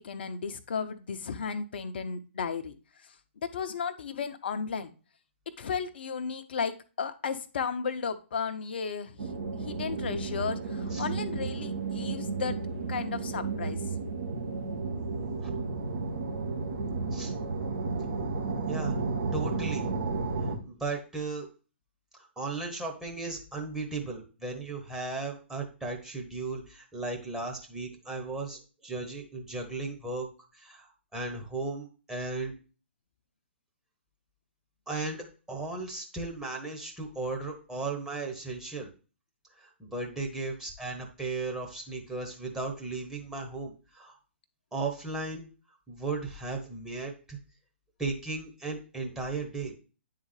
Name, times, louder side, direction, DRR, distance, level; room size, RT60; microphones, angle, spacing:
voice 1, 0.0-2.7 3.4-4.9 5.6-12.6 12.9-13.8, left 6 dB, 55° left, 10 dB, 0.6 m, -34 dB
sound 1, 9.2-20.6, right 4 dB, 65° right, 1.3 m, -33 dB
voice 2, 18.7-19.0 19.3-19.8 20.6-21.5 22.1-30.3 30.5-32.5 34.9-38.9 39.6-44.2 44.7-45.5 45.9-47.4 48.0-49.7, right 3 dB, 5° right, -1 dB, 1.1 m, -36 dB
9.5 x 3.7 x 3.1 m, 0.35 s
figure-of-eight pair, 125°, 6 cm